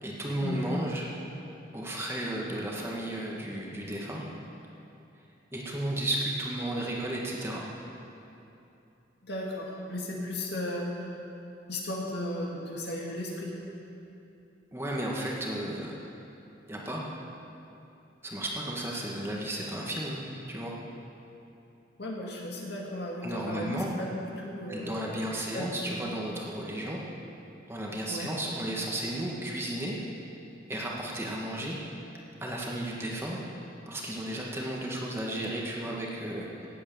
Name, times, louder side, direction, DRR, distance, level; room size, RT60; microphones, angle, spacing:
voice 1, 0.0-1.1 1.7-4.2 5.5-7.6 14.7-16.0 16.7-17.1 18.2-20.7 23.2-23.9 24.7-27.0 27.7-29.9 30.7-31.8 32.4-33.4 33.9-36.7, right 1 dB, 10° right, -3 dB, 1.6 m, -34 dB
voice 2, 9.2-11.1 11.7-13.6 22.0-25.2 25.5-26.1 28.1-28.3, left 1 dB, 55° left, -2 dB, 2.3 m, -35 dB
17.5 x 8.7 x 6.9 m, 2.8 s
head